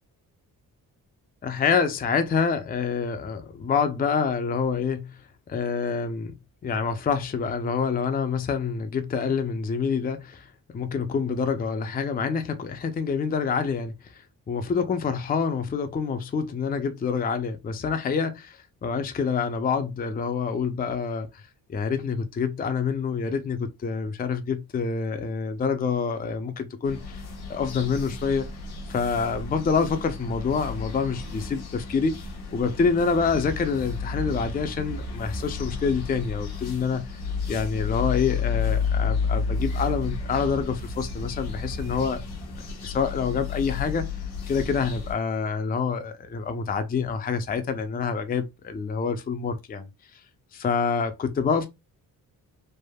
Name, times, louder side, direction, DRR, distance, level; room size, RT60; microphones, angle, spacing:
voice 1, 1.4-5.2 5.5-6.4 6.6-21.4 21.7-27.2 27.5-28.4 28.9-32.2 32.5-37.2 37.5-42.2 42.8-44.1 44.5-49.9 50.5-51.7, left 5 dB, 25° left, 0.4 m, -27 dB
sound 1, 26.8-45.1, left 5 dB, 85° left, 0.9 m, -32 dB
3.4 x 2.0 x 2.2 m
cardioid pair, 90°, 37 cm